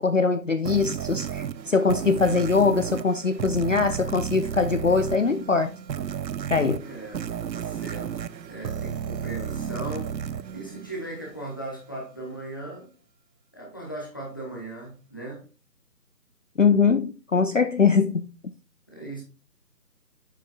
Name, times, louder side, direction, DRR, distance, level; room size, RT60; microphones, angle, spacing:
voice 1, 0.0-5.7 6.5-6.8 16.6-18.3, left 5 dB, 55° left, 0.5 m, -22 dB
sound 1, 0.7-11.4, right 8 dB, 90° right, 0.6 m, -33 dB
voice 2, 6.8-8.1 8.4-12.9 13.5-15.4 18.9-19.2, right 2 dB, 15° left, 1.0 m, -38 dB
7.5 x 6.9 x 2.3 m
figure-of-eight pair, 160°, 50 cm